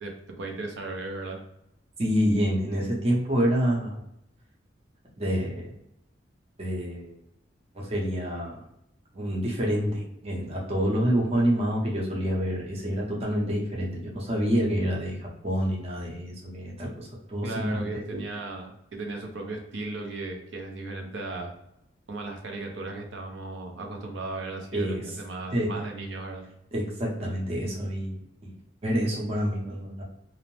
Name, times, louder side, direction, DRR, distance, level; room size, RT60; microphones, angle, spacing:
voice 1, 0.0-1.4 17.4-21.5 22.1-26.5, right 2 dB, 90° right, 2 dB, 0.6 m, -36 dB
voice 2, 2.0-4.0 5.2-5.7 6.6-7.2 7.7-8.6 9.1-18.2 24.7-25.0 25.5-25.7 26.7-28.5 28.8-30.0, equal, 35° right, -2 dB, 0.7 m, -27 dB
2.7 x 2.0 x 3.0 m, 0.78 s
head